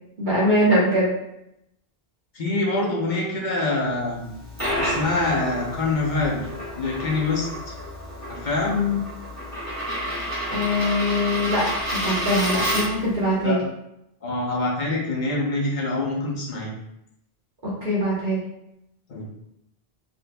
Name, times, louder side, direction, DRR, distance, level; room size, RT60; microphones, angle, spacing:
voice 1, 0.2-1.1 8.7-9.0 10.5-13.6 17.6-18.4, left 1 dB, 55° right, -7 dB, 1.2 m, -22 dB
voice 2, 2.3-4.3 4.8-6.5 6.8-7.7 8.3-8.8 13.4-13.6 14.2-16.7 19.1-19.3, left 2 dB, 50° left, -3 dB, 0.9 m, -25 dB
Coin (dropping), 4.2-13.1, equal, 15° right, 1.4 m, -29 dB
4.2 x 3.0 x 2.2 m, 0.83 s
omnidirectional pair, 1.0 m